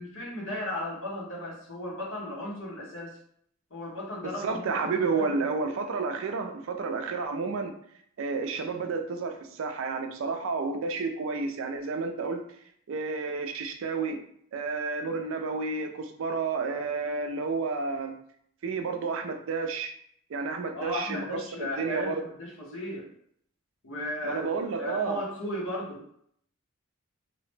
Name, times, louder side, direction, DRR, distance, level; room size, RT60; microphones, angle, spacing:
voice 1, 0.0-3.2 3.7-5.3 20.7-23.1 23.8-24.5 24.8-26.1, left 1 dB, 60° left, -3 dB, 0.9 m, -35 dB
voice 2, 4.2-7.8 8.2-12.6 12.9-14.2 14.5-18.2 18.6-19.9 20.3-22.2 24.2-25.2, right 4 dB, 65° right, 6 dB, 0.4 m, -31 dB
2.8 x 2.0 x 3.2 m, 0.68 s
head